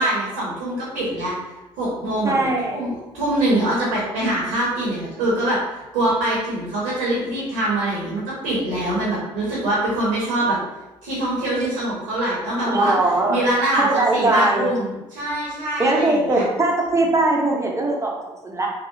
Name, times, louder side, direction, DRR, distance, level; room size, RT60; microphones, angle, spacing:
voice 1, 0.0-1.3 1.8-10.6 11.0-12.9 13.3-16.4, right 1 dB, 80° right, -7 dB, 0.9 m, -24 dB
voice 2, 2.2-2.8 12.6-13.4 13.8-14.7 15.8-18.7, right 2 dB, 20° right, -1 dB, 0.7 m, -20 dB
2.7 x 2.0 x 2.6 m, 1.0 s
hypercardioid pair, 50°, 13 cm